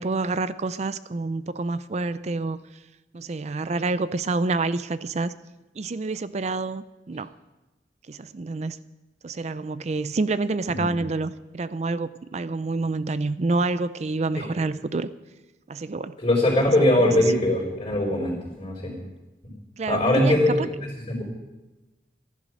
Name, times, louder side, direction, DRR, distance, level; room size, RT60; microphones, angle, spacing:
voice 1, 0.0-2.6 3.1-5.3 5.8-7.3 8.1-8.8 9.2-15.1 15.7-16.1 17.0-17.1 19.8-20.7, right 3 dB, 40° right, 15 dB, 0.4 m, -28 dB
voice 2, 10.7-11.0 14.4-14.5 16.2-19.0 19.8-20.5 20.8-21.2, left 1 dB, 30° left, -7 dB, 4.2 m, -22 dB
15.5 x 11.0 x 6.3 m, 1.1 s
head